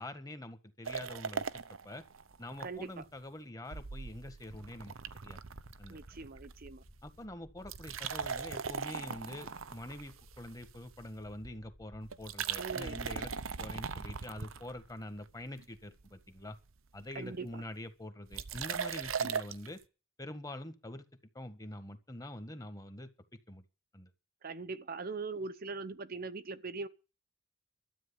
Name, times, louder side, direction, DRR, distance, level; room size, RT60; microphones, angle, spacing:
voice 1, 0.0-2.0 2.4-4.9 5.2-5.4 5.8-6.0 7.0-13.3 13.6-16.6 16.9-19.8 20.2-21.0 21.3-23.1 23.5-23.6 23.9-24.1, left 1 dB, 20° left, 1.7 m, -45 dB
sound 1, 0.9-2.7 3.0-3.1 3.7-6.6 6.9-7.2 7.6-10.9 12.1-15.1 15.6-16.1 16.4-16.5 16.7-16.8 16.9-17.3 18.3-19.7, right 6 dB, 90° right, 0.8 m, -39 dB
voice 2, 2.6-2.9 5.9-6.8 12.6-13.0 17.1-17.6 24.4-26.9, right 4 dB, 45° right, 0.8 m, -41 dB
sound 2, 5.3-15.0, equal, 50° left, 2.1 m, -58 dB
13.0 x 9.0 x 7.1 m
head